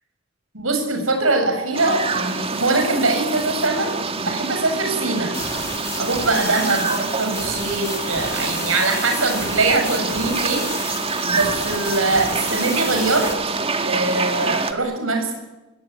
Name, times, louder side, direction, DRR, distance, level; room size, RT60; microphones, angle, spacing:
voice 1, 0.5-3.9 4.2-5.3 6.0-13.3 13.8-15.3, right 3 dB, 90° right, 5 dB, 7.6 m, -22 dB
sound 1, 1.7-14.7, right 4 dB, 30° right, 2.0 m, -26 dB
sound 2, 5.3-13.3, left 3 dB, 15° left, 5.3 m, -32 dB
25.5 x 22.0 x 9.7 m, 1.1 s
head